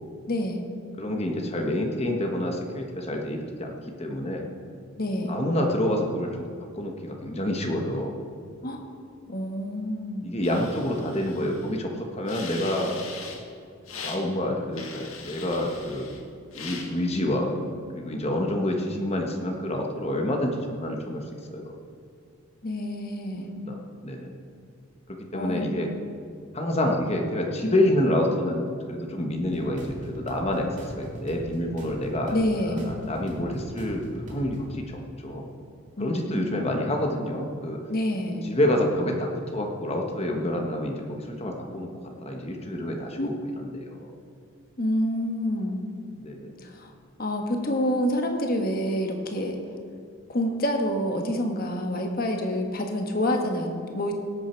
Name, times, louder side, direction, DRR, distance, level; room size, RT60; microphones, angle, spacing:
voice 1, 0.3-0.6 5.0-5.4 8.6-8.8 9.3-10.4 22.6-23.6 25.3-25.7 32.3-32.9 36.0-36.2 37.9-38.5 43.2-43.3 44.8-45.8 46.6-46.9 47.2-49.6 50.3-54.1, left 1 dB, 45° left, 3 dB, 1.4 m, -27 dB
voice 2, 1.0-4.5 5.3-6.4 6.8-8.1 10.2-12.9 14.0-16.1 16.5-17.5 17.9-21.2 21.5-21.7 23.3-24.3 25.1-25.9 26.5-32.4 32.6-35.4 36.0-37.8 38.4-41.9 42.2-44.1 46.2-46.5, left 1 dB, 30° left, 1 dB, 1.3 m, -28 dB
sound 1, 10.4-11.7 12.3-13.4 13.9-14.2 14.7-16.2 16.5-16.9, left 5 dB, 80° left, 1.7 m, -40 dB
Rolling Techno, 29.4-34.7, equal, 35° right, 2.4 m, -41 dB
18.0 x 8.6 x 4.6 m, 2.3 s
head